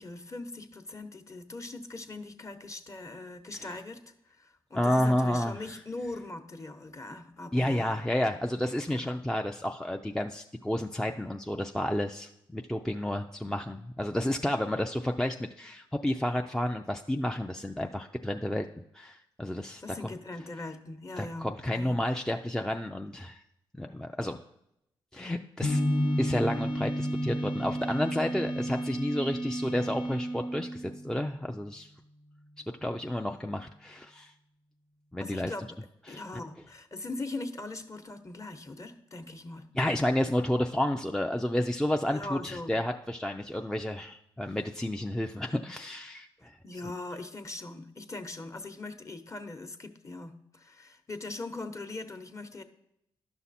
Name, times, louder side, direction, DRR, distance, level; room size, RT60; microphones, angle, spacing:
voice 1, 0.0-4.0 4.3-8.0 8.9-9.1 19.8-22.0 35.2-35.8 36.1-39.7 42.1-42.7 46.6-52.6, left 2 dB, 30° left, 8 dB, 1.1 m, -41 dB
voice 2, 4.7-5.8 7.5-18.7 18.9-19.8 21.2-23.4 23.8-24.4 25.1-25.8 26.2-31.9 32.8-34.3 35.1-35.5 36.1-36.2 39.8-46.6, left 1 dB, 5° left, 4 dB, 0.5 m, -31 dB
sound 1, 25.6-31.7, left 1 dB, 55° left, 1.2 m, -34 dB
sound 2, 25.7-31.2, right 2 dB, 85° left, 1.3 m, -35 dB
11.0 x 5.8 x 4.2 m, 0.80 s
supercardioid pair, 55°, 10 cm